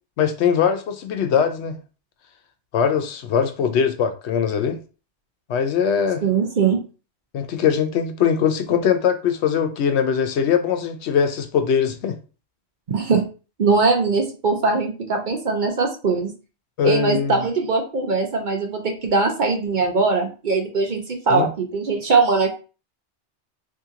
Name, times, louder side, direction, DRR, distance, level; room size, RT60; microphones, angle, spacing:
voice 1, 0.2-1.8 2.7-4.8 5.5-6.2 7.3-12.2 16.8-17.4 21.3-21.5, left 7 dB, 70° left, 0.8 m, -21 dB
voice 2, 6.2-6.8 12.9-13.2 13.6-16.3 16.8-22.5, right 4 dB, 50° right, 0.7 m, -21 dB
2.8 x 2.7 x 3.6 m
omnidirectional pair, 1.2 m